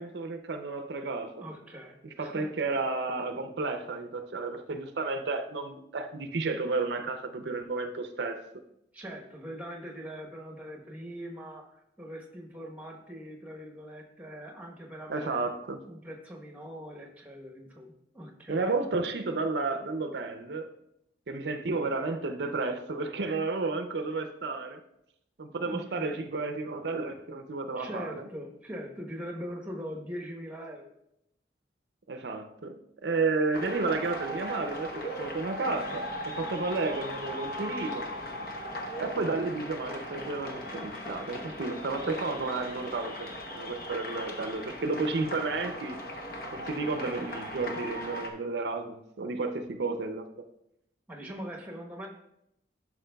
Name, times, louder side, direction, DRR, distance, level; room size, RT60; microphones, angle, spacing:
voice 1, 0.0-1.5 2.0-8.4 15.1-15.8 18.5-20.7 21.3-24.8 25.4-28.2 32.1-38.1 39.0-46.0 46.5-50.2, right 3 dB, 70° right, 7 dB, 0.5 m, -32 dB
voice 2, 1.4-2.5 8.9-15.5 15.9-18.7 25.6-26.1 27.7-30.9 47.0-47.2 51.1-52.1, equal, 10° right, 1 dB, 1.0 m, -42 dB
sound 1, 33.5-48.3, equal, 55° left, 0.9 m, -38 dB
11.0 x 5.9 x 2.3 m, 0.79 s
head